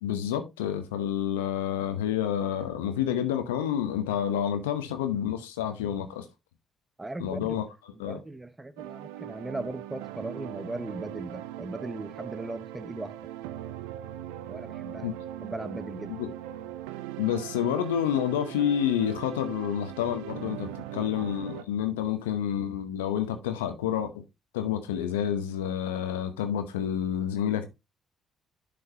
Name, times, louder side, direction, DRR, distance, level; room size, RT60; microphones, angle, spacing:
voice 1, 0.0-6.2 7.2-7.7 8.0-8.2 15.0-15.1 16.1-16.3 17.2-24.2 24.5-27.7, left 10 dB, 85° left, 0.9 m, -29 dB
voice 2, 7.0-7.6 8.0-13.1 14.5-15.1 15.4-16.1, right 2 dB, 20° right, 0.9 m, -38 dB
sound 1, 8.8-21.6, right 12 dB, 80° right, 0.5 m, -40 dB
11.0 x 5.1 x 2.8 m
hypercardioid pair, 45°, 0 cm